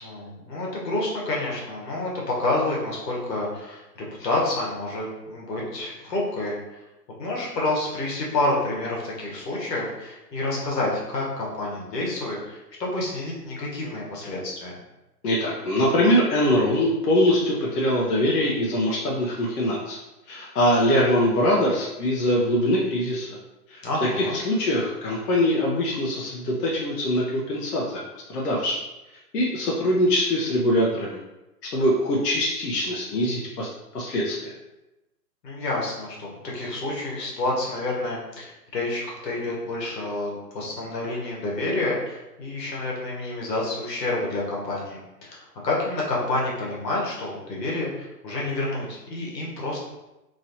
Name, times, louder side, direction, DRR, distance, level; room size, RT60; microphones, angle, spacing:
voice 1, 0.0-6.6 7.2-14.7 23.8-24.4 35.4-49.8, left 2 dB, 90° left, -3 dB, 1.3 m, -29 dB
voice 2, 15.2-20.0 20.3-23.3 23.7-28.0 28.3-28.8 29.3-31.2 31.6-34.5, left 1 dB, 65° left, -4 dB, 0.7 m, -23 dB
3.0 x 2.6 x 2.8 m, 0.98 s
hypercardioid pair, 160°, 48 cm